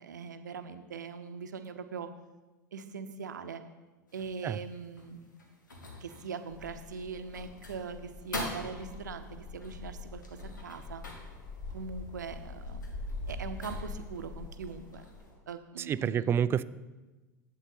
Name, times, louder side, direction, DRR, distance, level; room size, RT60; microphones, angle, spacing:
voice 1, 0.0-2.1 2.7-3.6 4.1-5.3 6.0-11.0 11.7-12.9 13.2-15.0 15.5-16.4, right 5 dB, 70° right, 9 dB, 0.8 m, -41 dB
sound 1, 4.1-15.3, left 1 dB, 80° left, 1.6 m, -46 dB
sound 2, 6.5-15.4, left 3 dB, 45° left, 1.9 m, -44 dB
voice 2, 15.8-16.6, right 8 dB, 25° right, 17 dB, 0.3 m, -28 dB
11.5 x 8.2 x 4.1 m, 1.2 s
figure-of-eight pair, 80°, 10 cm